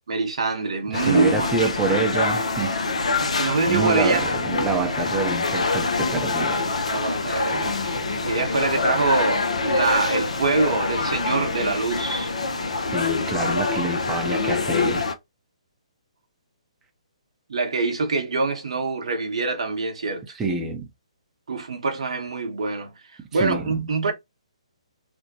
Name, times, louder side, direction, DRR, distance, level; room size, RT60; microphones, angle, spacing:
voice 1, 0.1-2.0 3.4-4.3 6.9-12.3 17.5-20.4 21.5-22.9 23.3-24.1, right 3 dB, 60° right, 0.7 m, -25 dB
sound 1, 0.9-15.1, left 3 dB, 70° left, 0.5 m, -25 dB
voice 2, 0.9-2.8 3.7-6.6 12.9-15.0 20.4-20.9 23.3-23.8, right 4 dB, 10° right, 0.5 m, -27 dB
2.5 x 2.1 x 2.7 m
figure-of-eight pair, 135°, 4 cm